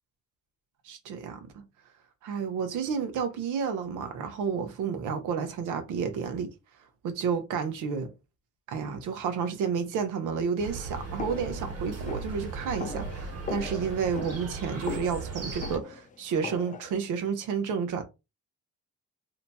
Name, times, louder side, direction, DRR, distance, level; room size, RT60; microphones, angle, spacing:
voice 1, 0.8-1.7 2.2-6.5 7.0-8.1 8.7-18.0, right 6 dB, 85° right, 0.9 m, -31 dB
Chirp tweet, 10.6-15.8, right 3 dB, 50° right, 1.4 m, -37 dB
sound 1, 11.2-16.9, left 5 dB, 25° left, 0.4 m, -40 dB
2.8 x 2.3 x 4.1 m
cardioid pair, 90°, 30 cm